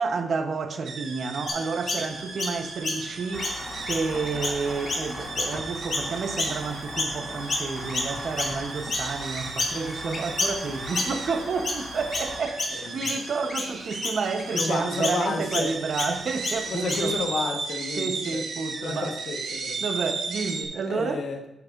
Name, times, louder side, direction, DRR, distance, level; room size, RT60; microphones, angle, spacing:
voice 1, 0.0-17.2 18.0-19.1 19.8-21.2, right 4 dB, 60° right, 0.9 m, -30 dB
sound 1, 0.8-20.6, right 4 dB, 75° right, 1.2 m, -36 dB
Chirp tweet, 1.5-7.2 7.5-17.2, left 2 dB, 50° left, 1.9 m, -31 dB
sound 2, 3.3-12.4, left 2 dB, 25° left, 2.4 m, -39 dB
voice 2, 12.7-13.2 14.5-15.7 16.7-18.4 18.7-19.8 20.8-21.4, left 4 dB, 70° left, 1.2 m, -31 dB
9.8 x 8.4 x 2.5 m
cardioid pair, 95°, 0 cm